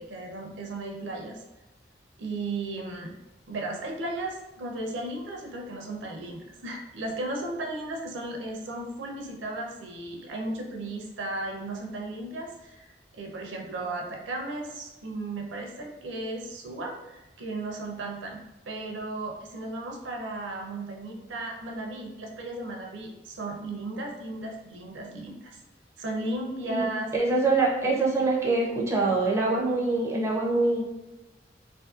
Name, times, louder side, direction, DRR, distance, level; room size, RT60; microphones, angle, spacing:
voice 1, 0.0-1.4 2.2-3.1 3.5-25.6 26.0-27.1, right 2 dB, 90° right, 0 dB, 0.5 m, -35 dB
voice 2, 27.1-30.8, right 3 dB, 15° right, -3 dB, 0.4 m, -24 dB
2.6 x 2.5 x 2.4 m, 1.0 s
head